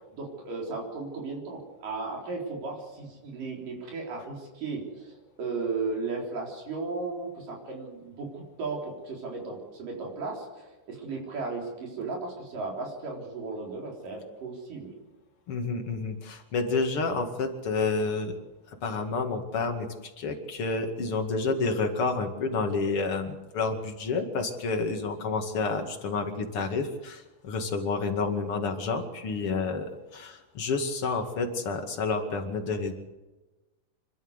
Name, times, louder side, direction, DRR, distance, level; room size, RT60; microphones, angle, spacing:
voice 1, 0.1-14.9, right 3 dB, 80° right, -1 dB, 5.6 m, -35 dB
voice 2, 15.5-18.4 18.7-19.9 20.2-32.9, left 4 dB, 45° left, 4 dB, 2.9 m, -29 dB
26.5 x 13.0 x 8.2 m, 1.1 s
omnidirectional pair, 3.8 m